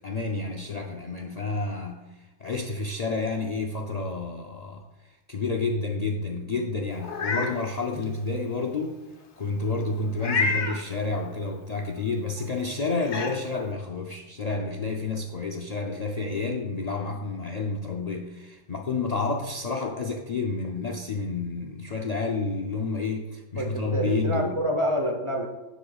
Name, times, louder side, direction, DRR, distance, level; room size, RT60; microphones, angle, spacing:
voice 1, 0.0-2.0 2.4-4.8 5.3-9.0 9.4-24.5, left 3 dB, 45° left, 1 dB, 0.5 m, -30 dB
Meow, 7.0-7.5 8.0-8.1 10.2-10.8 12.4-12.5 13.0-13.3, left 4 dB, 70° left, 1.3 m, -27 dB
voice 2, 23.6-25.5, equal, 30° right, 3 dB, 0.8 m, -27 dB
11.0 x 7.6 x 2.4 m, 1.1 s
omnidirectional pair, 1.2 m